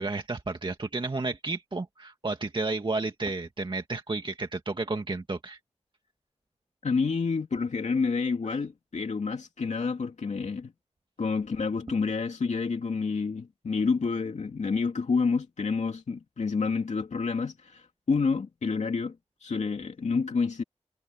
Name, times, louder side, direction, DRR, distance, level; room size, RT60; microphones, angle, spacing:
voice 1, 0.0-5.6, right 3 dB, 45° right, 2.0 m, -32 dB
voice 2, 6.8-10.7 11.2-19.2 19.4-20.6, left 4 dB, 85° left, 2.6 m, -28 dB
wide cardioid pair, 70°, 12 cm